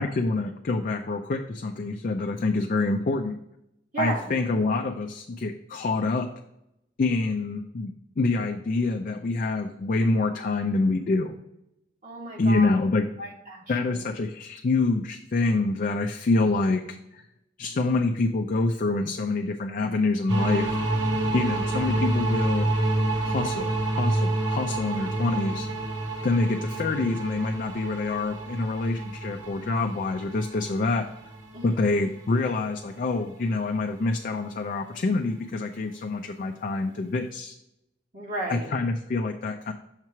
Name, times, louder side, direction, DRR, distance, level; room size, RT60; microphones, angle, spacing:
voice 1, 0.0-3.4 4.0-6.3 7.0-11.3 12.4-13.1 13.7-17.2 17.6-20.8 21.3-22.7 23.2-25.7 26.2-31.1 31.6-37.5 38.5-39.7, left 3 dB, 50° left, 4 dB, 0.4 m, -26 dB
voice 2, 3.9-4.3 12.0-12.7 13.2-13.6 13.9-14.0 31.5-31.8 38.1-38.7, right 2 dB, 45° right, -3 dB, 1.5 m, -33 dB
sound 1, 20.3-32.8, right 2 dB, 90° right, 1.1 m, -28 dB
6.5 x 3.0 x 5.8 m, 0.84 s
head